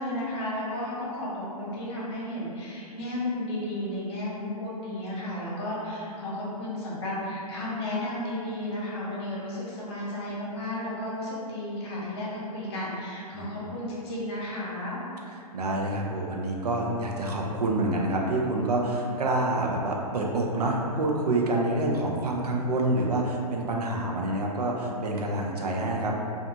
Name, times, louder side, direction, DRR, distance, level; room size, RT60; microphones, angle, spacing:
voice 1, 0.0-15.0, left 1 dB, 40° left, -7 dB, 0.9 m, -33 dB
voice 2, 15.5-26.2, right 2 dB, 75° right, -1 dB, 0.5 m, -27 dB
2.6 x 2.3 x 2.6 m, 2.5 s
figure-of-eight pair, 125°, 20 cm